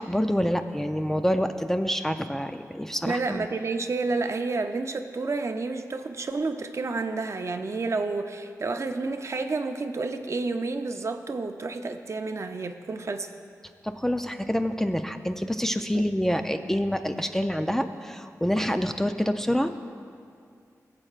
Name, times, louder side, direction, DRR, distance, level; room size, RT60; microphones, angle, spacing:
voice 1, 0.0-3.5 13.8-19.7, equal, 5° left, 7 dB, 0.4 m, -27 dB
voice 2, 3.0-13.3 15.9-16.0, right 3 dB, 50° right, 6 dB, 0.5 m, -30 dB
20.0 x 7.7 x 2.4 m, 2.3 s
wide cardioid pair, 75°, 6 cm